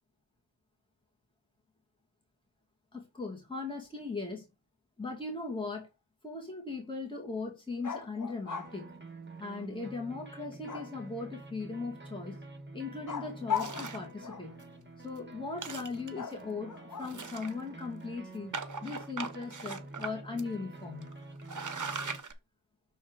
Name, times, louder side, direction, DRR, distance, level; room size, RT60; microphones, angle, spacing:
voice 1, 2.9-4.5 5.0-5.9 6.2-8.9 9.4-12.4 12.7-14.6 15.0-18.5 18.8-21.1, left 3 dB, 10° left, 2.2 m, -38 dB
sound 1, 7.8-8.7 10.7-11.3 13.1-14.6 16.2-17.3, left 7 dB, 40° left, 0.8 m, -38 dB
sound 2, 8.6-22.2, right 2 dB, 25° right, 1.5 m, -48 dB
sound 3, 13.5-14.1 14.6-14.7 15.0-15.2 15.5-16.3 17.0-17.8 18.5-20.1 20.4-20.5 21.0-21.1 21.4-22.3, right 5 dB, 40° right, 0.9 m, -39 dB
6.6 x 4.4 x 3.9 m
wide cardioid pair, 55°, 46 cm